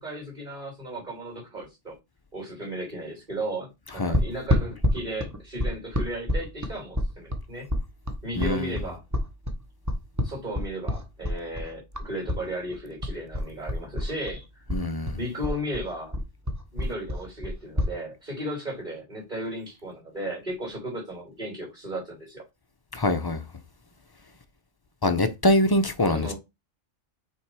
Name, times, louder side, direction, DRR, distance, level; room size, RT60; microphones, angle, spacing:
voice 1, 0.0-1.9 2.3-7.6 8.2-9.0 10.2-14.6 15.2-16.2 16.7-22.4 26.1-26.3, right 1 dB, 40° right, 3.5 m, -35 dB
sound 1, 4.1-12.4 12.7-14.4 14.7-17.9, left 1 dB, 15° right, 0.9 m, -28 dB
voice 2, 8.4-8.8 14.7-15.2 22.9-23.4 25.0-26.3, left 1 dB, 25° left, 0.5 m, -24 dB
5.9 x 3.7 x 4.8 m
omnidirectional pair, 1.3 m